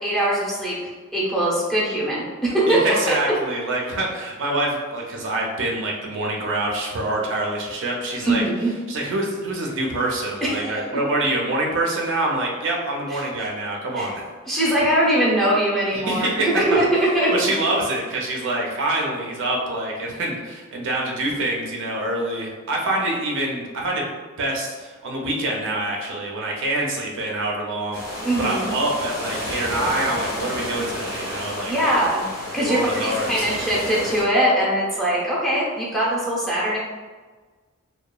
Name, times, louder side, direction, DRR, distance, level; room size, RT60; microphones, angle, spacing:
voice 1, 0.0-0.8 1.1-2.8 8.2-8.7 10.4-10.8 13.1-13.5 14.0-14.1 14.5-16.9 17.1-17.3 28.2-28.7 31.7-32.3 32.5-36.8, right 1 dB, ahead, -7 dB, 0.6 m, -22 dB
voice 2, 2.7-8.4 8.9-14.7 15.9-16.9 17.3-24.1 24.4-32.0 32.6-33.6, right 1 dB, 60° right, -1 dB, 0.5 m, -26 dB
sound 1, 27.9-34.2, left 1 dB, 90° left, 1.1 m, -31 dB
2.8 x 2.2 x 2.3 m, 1.4 s
head